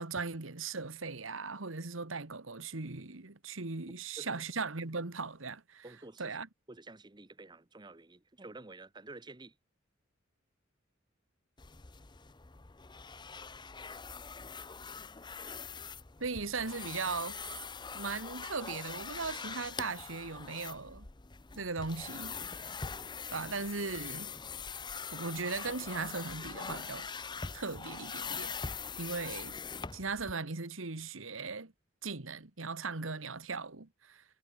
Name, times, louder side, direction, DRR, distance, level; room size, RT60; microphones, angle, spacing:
voice 1, 0.0-5.9 6.2-6.5 16.2-17.4 17.9-21.1 21.6-22.8 23.3-24.3 25.1-27.1 27.5-28.5 29.0-29.6 29.9-31.7 32.0-34.2, right 4 dB, 85° right, 1.7 m, -38 dB
voice 2, 5.8-6.4 6.7-9.5, right 2 dB, 20° right, 0.9 m, -50 dB
sound 1, 11.6-30.3, left 5 dB, 25° left, 0.7 m, -43 dB
head